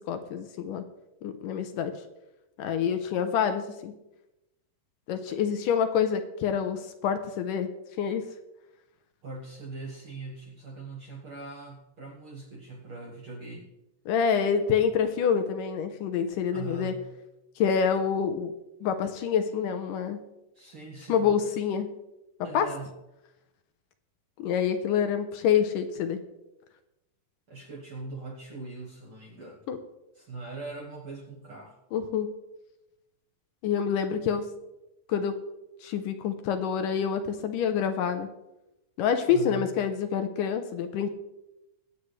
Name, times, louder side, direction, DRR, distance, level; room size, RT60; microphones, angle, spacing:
voice 1, 0.1-0.8 1.2-1.9 2.6-3.9 5.1-7.7 8.0-8.2 14.1-16.9 17.6-18.5 18.8-20.2 21.1-21.9 22.5-22.7 24.4-26.2 29.7-29.8 31.9-32.3 33.6-34.5 35.1-35.4 35.8-38.3 39.0-41.1, left 7 dB, 75° left, 8 dB, 2.2 m, -27 dB
voice 2, 9.2-13.7 16.5-17.1 20.5-21.4 22.4-22.9 27.5-29.6 30.1-31.8 39.3-39.7, right 3 dB, 60° right, -1 dB, 1.5 m, -41 dB
23.0 x 8.3 x 3.3 m, 0.95 s
omnidirectional pair, 4.1 m